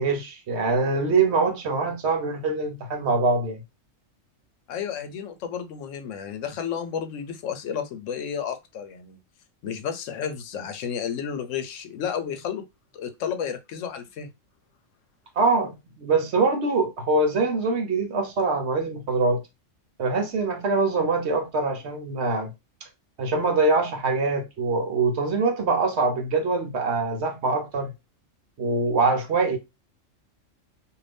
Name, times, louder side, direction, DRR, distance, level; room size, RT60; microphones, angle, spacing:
voice 1, 0.0-3.6 15.4-19.4 20.0-22.5 23.2-27.9 28.6-29.6, right 3 dB, 60° right, 1.0 m, -24 dB
voice 2, 4.7-9.2 9.6-12.6 12.9-14.3, left 8 dB, 80° left, 1.0 m, -32 dB
2.6 x 2.6 x 3.3 m
omnidirectional pair, 1.3 m